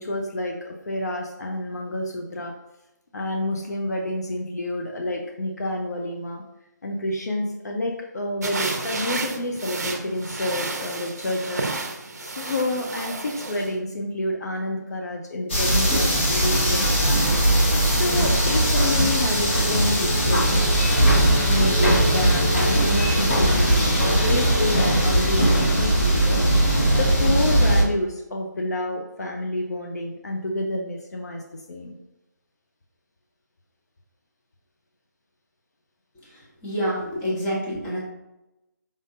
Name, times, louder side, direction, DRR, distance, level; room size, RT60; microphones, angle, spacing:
voice 1, 0.0-2.5 3.1-6.4 6.8-17.4 17.9-20.8 21.3-31.4 31.7-31.9, left 1 dB, 60° left, 1 dB, 0.7 m, -29 dB
sound 1, 8.4-13.7, right 3 dB, 55° right, 0.7 m, -31 dB
sound 2, 15.5-27.8, right 1 dB, 40° left, 1.5 m, -19 dB
voice 2, 36.6-38.0, equal, 15° left, -7 dB, 1.2 m, -27 dB
5.1 x 3.7 x 2.5 m, 0.95 s
figure-of-eight pair, 150°, 10 cm